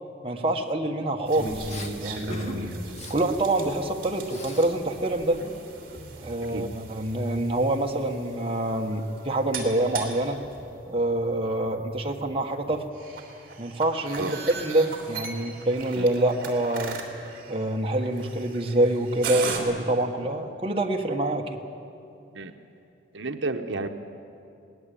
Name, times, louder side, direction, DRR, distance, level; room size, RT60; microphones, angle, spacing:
voice 1, 0.2-1.8 2.0-2.7 3.1-5.4 6.2-10.4 10.9-12.9 13.6-17.0 17.5-21.6, right 1 dB, 30° right, 1 dB, 1.4 m, -26 dB
sound 1, 1.2-19.6, right 3 dB, 45° right, 3.2 m, -38 dB
Respiratory sounds, 1.7-1.9 2.3-2.6 2.9-3.2 3.6-4.7 5.0-6.4, equal, 35° left, 1.7 m, -42 dB
voice 2, 23.1-23.9, right 3 dB, 70° right, 6 dB, 0.9 m, -31 dB
22.0 x 18.0 x 8.6 m, 2.8 s
head